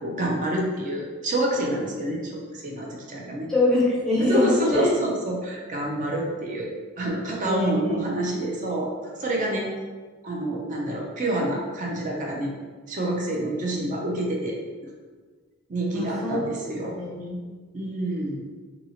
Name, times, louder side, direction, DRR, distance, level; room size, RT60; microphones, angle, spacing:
voice 1, 0.0-3.5 4.2-6.7 7.0-8.9 9.2-9.7 10.2-12.5 12.9-14.6 14.8-14.9 15.7-16.9 17.7-18.4, right 1 dB, 40° right, -1 dB, 0.5 m, -27 dB
voice 2, 3.5-4.9 7.4-8.0 15.9-16.4 17.0-17.4, left 1 dB, ahead, -6 dB, 0.6 m, -24 dB
2.8 x 2.8 x 2.8 m, 1.5 s
head